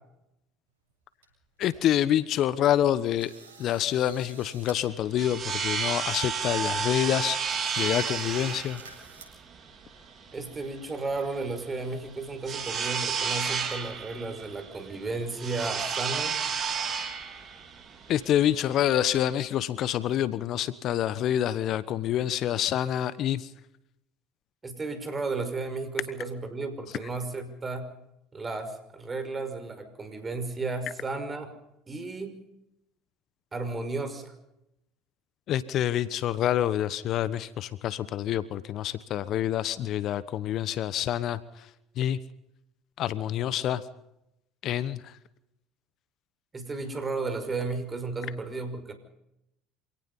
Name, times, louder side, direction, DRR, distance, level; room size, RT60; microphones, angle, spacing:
sound 1, 0.9-1.0 1.2-1.7 2.1-2.2 2.7-2.9 3.2-4.8 5.1-5.2 5.7-5.8 6.0-6.6 7.0-7.1 7.5-9.3, right 4 dB, 85° right, 7.7 m, -50 dB
voice 1, 1.6-3.3 3.6-7.4 7.8-8.8 18.1-23.5 35.5-41.4 42.0-42.2 43.0-43.8 44.6-45.0, left 11 dB, 55° left, 16 dB, 1.1 m, -27 dB
sound 2, 4.8-19.4, right 6 dB, 40° right, 3.8 m, -32 dB
voice 2, 10.3-16.4 24.6-27.9 28.3-31.5 31.9-32.3 33.5-34.3 46.5-48.9, right 3 dB, 25° right, 9 dB, 5.5 m, -33 dB
26.5 x 18.0 x 5.5 m, 0.84 s
hypercardioid pair, 70°, 0 cm